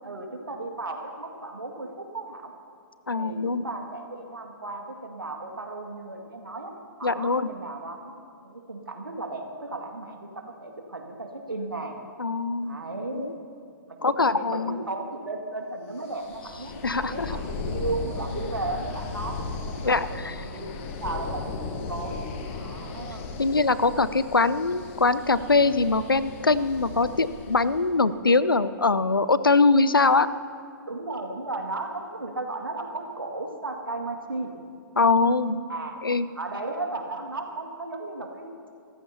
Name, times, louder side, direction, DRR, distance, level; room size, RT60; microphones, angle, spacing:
voice 1, 0.0-2.5 3.1-6.7 7.0-12.0 12.6-13.4 13.9-22.2 22.5-23.3 30.9-34.5 35.7-36.0 36.4-38.5, right 2 dB, 75° right, 2 dB, 2.1 m, -35 dB
voice 2, 3.1-3.6 7.0-7.5 12.2-12.8 13.1-13.3 14.0-14.8 16.8-17.3 19.8-20.3 23.4-30.3 35.0-35.6 36.0-36.3, left 3 dB, 80° left, 15 dB, 0.6 m, -22 dB
sound 1, 16.1-27.9, left 4 dB, 35° left, 1.3 m, -36 dB
28.0 x 14.5 x 2.8 m, 2.4 s
figure-of-eight pair, 120°, 12 cm